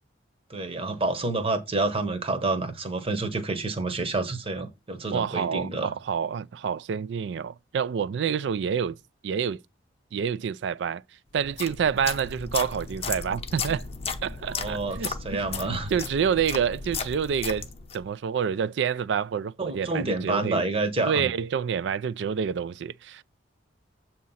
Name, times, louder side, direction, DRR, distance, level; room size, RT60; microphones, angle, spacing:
voice 1, 0.5-5.9 14.5-15.9 19.6-21.3, right 2 dB, 30° right, 0.9 m, -28 dB
voice 2, 5.1-9.0 9.2-9.6 10.1-11.0 11.3-13.9 14.2-17.7 17.9-20.6 21.0-23.2, right 7 dB, 70° right, 0.3 m, -28 dB
sound 1, 11.4-18.1, left 5 dB, 35° left, 0.7 m, -35 dB
7.3 x 2.9 x 5.5 m
head